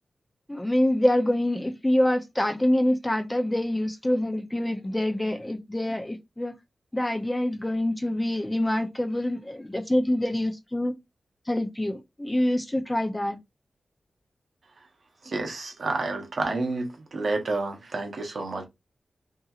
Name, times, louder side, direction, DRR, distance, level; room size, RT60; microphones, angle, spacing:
voice 1, 0.5-6.5 6.9-10.9 11.5-13.4, left 1 dB, 15° left, 0.5 m, -26 dB
voice 2, 15.2-18.6, right 3 dB, 55° right, 0.8 m, -29 dB
2.7 x 2.7 x 2.3 m
wide cardioid pair, 130°, 0 cm